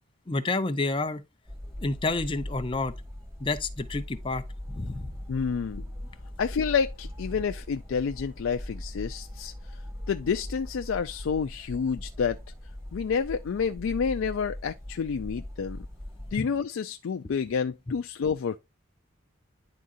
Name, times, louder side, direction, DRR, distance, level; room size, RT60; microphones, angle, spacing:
voice 1, 0.3-1.2 1.8-2.9 3.4-4.4 4.7-5.1 16.4-16.5, left 2 dB, 25° left, 0.6 m, -29 dB
sound 1, 1.4-16.4, left 1 dB, 15° right, 2.2 m, -40 dB
voice 2, 5.3-5.9 6.4-9.8 10.1-12.4 12.9-15.9 16.3-18.6, left 6 dB, 80° left, 0.4 m, -29 dB
10.5 x 3.7 x 2.5 m
head